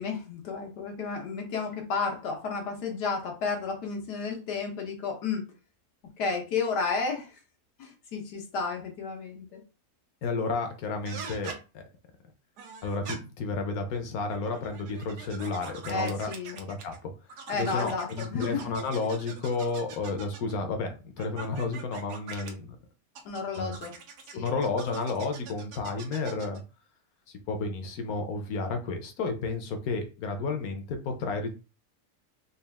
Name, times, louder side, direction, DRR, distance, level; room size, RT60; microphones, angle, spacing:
voice 1, 0.0-5.4 6.2-7.3 7.8-9.6 15.9-16.6 17.5-18.7 23.2-23.9 24.3-24.5, left 4 dB, 90° left, 2 dB, 1.6 m, -32 dB
voice 2, 10.2-11.8 12.8-17.1 17.5-22.8 23.6-23.8 24.3-26.6 27.5-31.5, left 3 dB, 70° left, 6 dB, 1.2 m, -32 dB
sound 1, 11.0-11.6 12.6-13.2 14.2-17.0 17.3-20.6 21.2-22.5 23.1-26.6, right 5 dB, 90° right, 1.4 m, -43 dB
4.2 x 2.4 x 3.4 m, 0.32 s
omnidirectional pair, 1.7 m